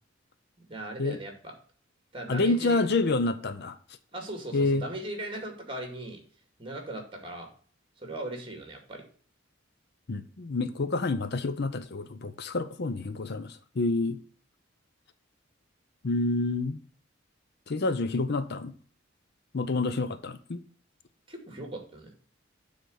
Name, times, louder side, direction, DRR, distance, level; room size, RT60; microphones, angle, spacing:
voice 1, 0.7-1.5 2.1-2.8 4.1-6.2 6.6-7.5 8.0-9.0 21.3-22.1, right 1 dB, 25° right, 2.3 m, -38 dB
voice 2, 2.3-3.8 4.5-4.9 10.1-14.2 16.0-16.8 17.7-18.7 19.5-20.6, left 3 dB, 55° left, 0.6 m, -28 dB
9.1 x 4.1 x 6.3 m
head